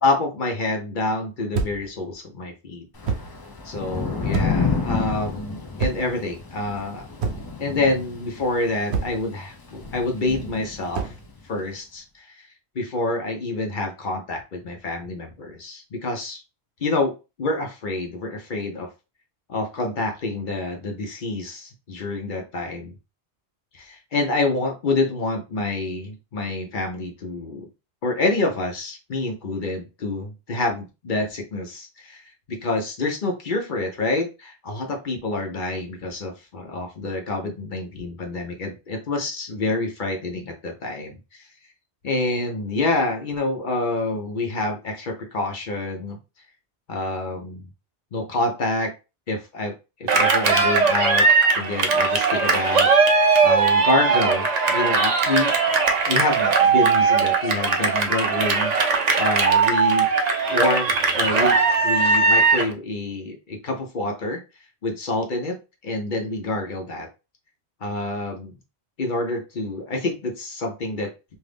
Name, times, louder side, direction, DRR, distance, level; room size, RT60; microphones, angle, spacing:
voice 1, 0.0-2.9 3.6-7.1 7.6-11.1 11.4-12.5 12.7-16.4 16.8-18.9 19.5-22.9 23.7-27.7 28.0-32.2 32.5-41.2 42.0-46.2 46.9-47.7 48.1-48.9 49.3-49.7 50.0-51.3 51.6-55.5 56.1-60.1 60.5-61.6 61.8-64.4 64.8-65.6 65.8-67.1 67.8-68.6 69.0-71.1, left 2 dB, 50° left, 2 dB, 0.8 m, -27 dB
sound 1, 1.5-1.9 3.0-3.4 4.3-4.7 5.8-6.2 7.2-7.6 8.9-9.3 10.9-11.2, right 5 dB, 75° right, 0.9 m, -27 dB
Thunder / Rain, 2.9-11.3, left 4 dB, 35° left, 0.4 m, -30 dB
Cheering, 50.1-62.7, right 4 dB, 50° right, 0.5 m, -19 dB
2.6 x 2.4 x 3.4 m, 0.29 s
omnidirectional pair, 1.1 m